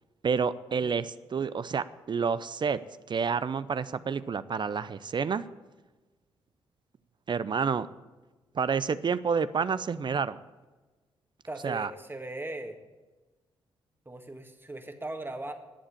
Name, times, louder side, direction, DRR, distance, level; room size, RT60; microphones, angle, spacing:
voice 1, 0.2-2.8 3.1-5.5 7.3-7.9 8.5-10.4 11.6-11.9, right 6 dB, 40° right, 15 dB, 0.5 m, -29 dB
voice 2, 11.4-12.8 14.0-15.5, right 2 dB, 20° right, 5 dB, 1.8 m, -39 dB
11.5 x 7.4 x 8.5 m, 1.2 s
hypercardioid pair, 45°, 11 cm